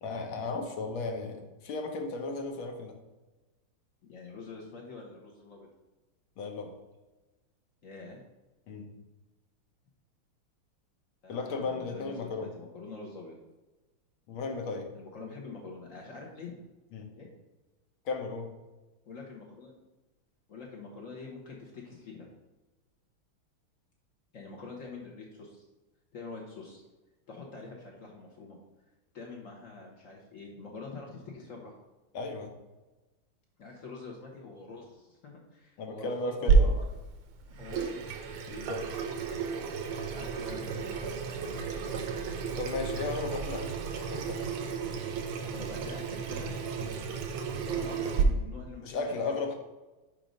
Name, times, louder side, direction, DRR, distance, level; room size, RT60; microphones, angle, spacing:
voice 1, 0.0-2.9 6.4-6.7 8.7-8.9 11.3-12.5 14.3-14.9 16.9-17.1 18.0-18.5 32.1-32.5 35.8-36.7 38.5-38.9 42.6-43.7 44.0-44.4 46.8-46.9 48.8-49.5, left 3 dB, 75° left, 3 dB, 1.7 m, -35 dB
voice 2, 4.0-5.7 7.8-8.2 11.2-13.4 14.9-16.5 17.1-17.3 19.1-19.8 20.5-22.3 24.3-25.6 26.1-26.8 27.3-28.6 29.1-31.7 33.6-36.8 37.4-38.0 40.0-42.0 45.4-46.5 47.5-49.3, left 3 dB, 50° left, -1 dB, 1.0 m, -45 dB
Water tap faucet / Sink (filling or washing), 36.5-48.2, right 5 dB, 85° right, 1.6 m, -31 dB
5.2 x 4.5 x 5.0 m, 1.1 s
omnidirectional pair, 2.3 m